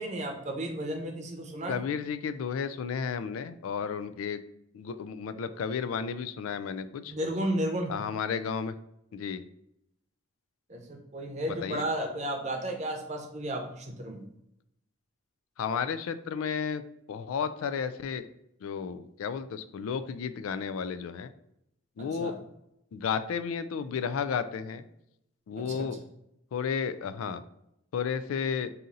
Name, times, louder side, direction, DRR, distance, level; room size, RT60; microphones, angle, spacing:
voice 1, 0.0-1.8 7.1-7.9 10.7-14.2 22.0-22.3 25.5-25.9, right 1 dB, 35° right, 3 dB, 0.7 m, -33 dB
voice 2, 1.7-4.4 4.7-7.1 7.9-8.7 9.1-9.4 11.6-11.8 15.6-16.8 17.1-18.3 18.6-21.3 22.0-22.4 22.9-24.9 25.5-26.0 26.5-27.4 27.9-28.7, left 6 dB, 90° left, 12 dB, 0.3 m, -32 dB
4.1 x 2.6 x 3.8 m, 0.81 s
head